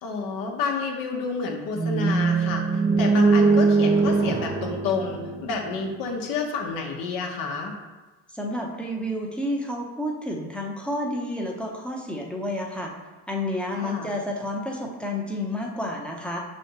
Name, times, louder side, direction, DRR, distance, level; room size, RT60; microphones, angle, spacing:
voice 1, 0.0-7.7 13.8-14.1, left 4 dB, 60° left, 1 dB, 1.0 m, -29 dB
sound 1, 1.7-5.9, right 4 dB, 20° right, 0.4 m, -21 dB
voice 2, 8.3-12.9 13.3-16.4, left 1 dB, 5° left, -1 dB, 0.7 m, -30 dB
5.4 x 3.4 x 2.8 m, 1.2 s
supercardioid pair, 90°, 36 cm